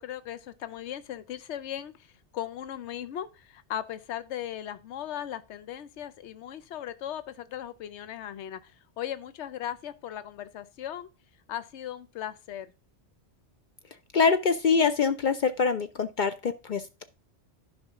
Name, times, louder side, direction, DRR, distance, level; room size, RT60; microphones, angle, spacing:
voice 1, 0.0-11.1 11.5-12.7, left 11 dB, 80° left, 1.0 m, -38 dB
voice 2, 14.1-17.0, left 5 dB, 55° left, 0.6 m, -24 dB
11.5 x 5.3 x 3.6 m
omnidirectional pair, 1.2 m